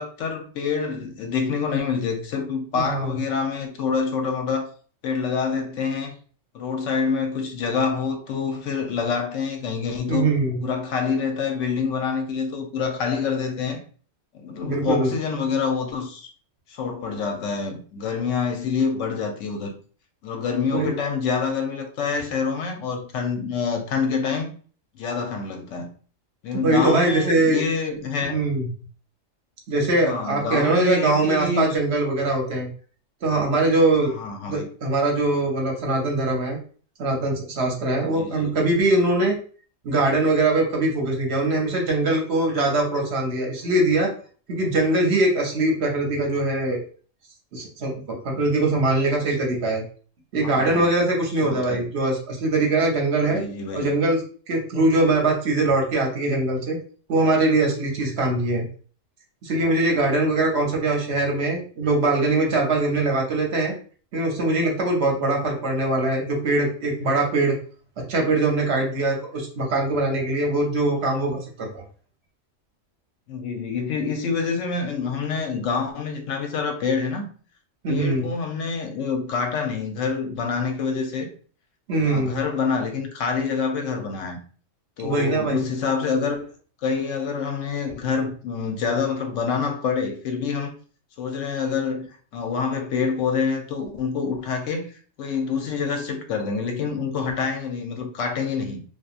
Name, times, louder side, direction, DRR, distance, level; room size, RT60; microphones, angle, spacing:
voice 1, 0.0-4.7 5.0-6.1 6.5-10.3 10.6-13.8 14.3-16.3 16.7-19.7 20.2-24.5 24.9-25.9 26.4-28.4 30.0-31.7 34.2-34.7 38.1-38.5 50.4-50.9 51.4-51.8 53.3-53.9 73.3-77.2 77.9-81.3 82.0-84.4 85.0-86.5 86.8-90.7 91.2-94.9 95.2-98.8, left 5 dB, 80° left, 0.9 m, -26 dB
voice 2, 2.7-3.1 10.1-10.6 14.6-15.1 20.7-20.9 26.5-27.6 28.3-28.7 29.7-32.7 33.2-34.1 34.5-36.6 37.0-39.4 39.8-44.1 44.5-46.8 47.5-49.8 50.3-53.4 53.7-54.2 54.5-56.8 57.1-58.6 59.4-63.7 64.1-67.6 68.0-71.8 77.8-78.3 81.9-82.4 85.0-85.6, right 2 dB, 60° right, 0.9 m, -22 dB
2.8 x 2.3 x 2.4 m
omnidirectional pair, 1.3 m